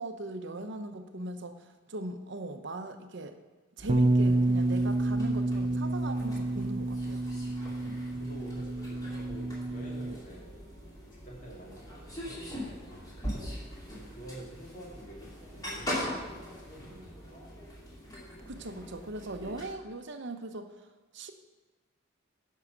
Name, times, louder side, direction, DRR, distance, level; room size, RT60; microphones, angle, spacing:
voice 1, 0.0-3.4 3.8-7.2 18.5-20.7 21.1-21.3, right 2 dB, 65° right, 8 dB, 0.8 m, -39 dB
sound 1, 3.8-19.7, equal, 20° left, 2.6 m, -42 dB
Bass guitar, 3.9-10.1, right 2 dB, 30° right, 0.6 m, -29 dB
voice 2, 8.1-10.6 11.2-12.9 13.9-17.5, right 1 dB, 40° left, -2 dB, 2.6 m, -48 dB
11.0 x 5.6 x 6.4 m, 1.2 s
head